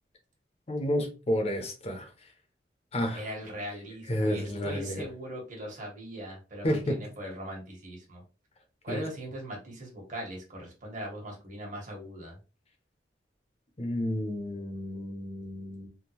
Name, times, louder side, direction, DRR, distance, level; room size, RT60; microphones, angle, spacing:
voice 1, 0.7-2.1 2.9-3.2 4.1-5.0 6.6-7.0 8.9-9.0 13.8-15.9, equal, 35° left, 0.8 m, -30 dB
voice 2, 3.1-8.2 8.8-12.3, equal, 45° right, 1.4 m, -40 dB
3.6 x 2.3 x 2.9 m
head